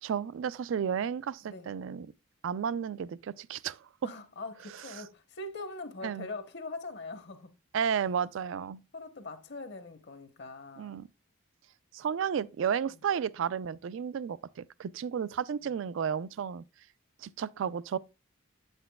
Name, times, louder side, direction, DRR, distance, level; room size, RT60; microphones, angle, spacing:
voice 1, 0.0-2.1 2.4-3.9 6.0-6.3 7.7-8.8 10.8-11.1 11.9-16.6 17.2-18.0, right 7 dB, 65° right, 0.3 m, -32 dB
voice 2, 4.0-7.5 8.9-11.0 12.9-13.0 15.6-15.7, left 3 dB, 55° left, 0.9 m, -42 dB
8.4 x 8.0 x 2.2 m
head